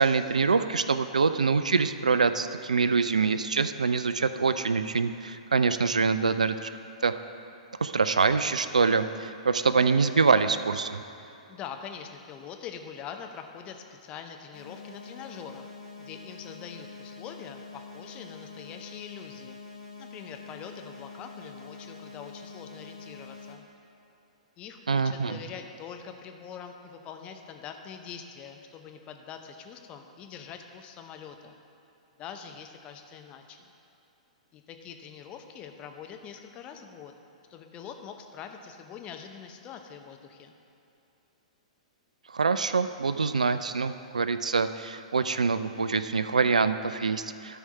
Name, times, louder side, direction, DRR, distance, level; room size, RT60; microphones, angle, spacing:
voice 1, 0.0-6.7 7.0-7.1 7.8-11.0 24.9-25.4 42.3-47.6, right 4 dB, 80° right, 11 dB, 0.4 m, -25 dB
voice 2, 11.3-15.7 16.0-19.6 20.0-23.6 24.6-31.5 32.2-33.7 34.5-37.1 37.5-40.5, left 7 dB, 30° left, 5 dB, 0.7 m, -44 dB
sound 1, 14.5-23.5, left 4 dB, 70° left, 1.9 m, -45 dB
13.0 x 4.7 x 5.5 m, 2.8 s
figure-of-eight pair, 110°, 4 cm